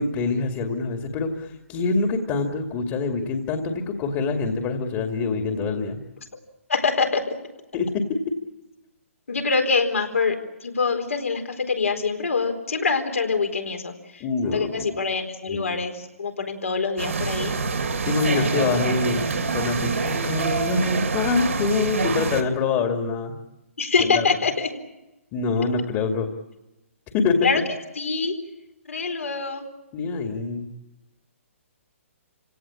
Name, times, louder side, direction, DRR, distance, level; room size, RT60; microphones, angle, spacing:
voice 1, 0.0-6.0 7.7-8.1 14.2-14.7 15.5-15.8 18.0-23.3 24.1-24.2 25.3-26.3 27.1-27.5 29.9-30.7, left 4 dB, 30° left, 5 dB, 2.4 m, -25 dB
voice 2, 6.7-7.2 9.3-17.5 18.2-18.8 23.8-24.7 27.4-27.6 27.9-28.3 28.9-29.6, left 4 dB, 75° left, 5 dB, 4.2 m, -25 dB
sound 1, 17.0-22.4, right 4 dB, 75° right, 3.3 m, -26 dB
28.5 x 17.5 x 8.7 m, 0.99 s
figure-of-eight pair, 135°, 8 cm